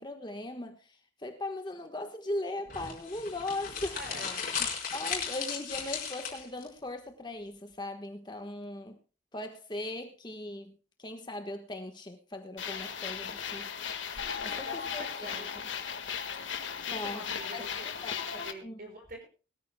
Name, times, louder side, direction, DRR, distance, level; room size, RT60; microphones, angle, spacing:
voice 1, 0.0-4.0 4.9-9.0 9.3-13.7 14.4-15.5 16.9-17.3 17.5-18.8, left 1 dB, 25° left, 6 dB, 1.3 m, -39 dB
sound 1, 2.7-6.7, left 6 dB, 45° left, 4.6 m, -36 dB
voice 2, 3.9-4.5 14.2-15.7 16.9-19.3, equal, 50° right, 3 dB, 6.1 m, -46 dB
sound 2, 12.6-18.5, left 7 dB, 80° left, 1.7 m, -36 dB
21.5 x 14.0 x 2.2 m, 0.33 s
head